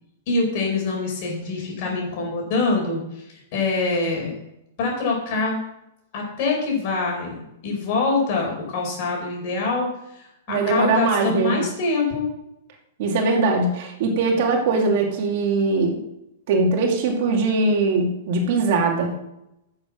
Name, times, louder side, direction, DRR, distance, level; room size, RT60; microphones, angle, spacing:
voice 1, 0.3-4.3 4.8-5.6 6.1-9.9 10.1-12.3, left 3 dB, 45° left, -1 dB, 5.3 m, -24 dB
voice 2, 10.5-11.6 13.0-16.0 16.5-19.1, right 3 dB, 50° right, 2 dB, 2.4 m, -21 dB
10.5 x 8.0 x 6.3 m, 0.84 s
hypercardioid pair, 160°, 0 cm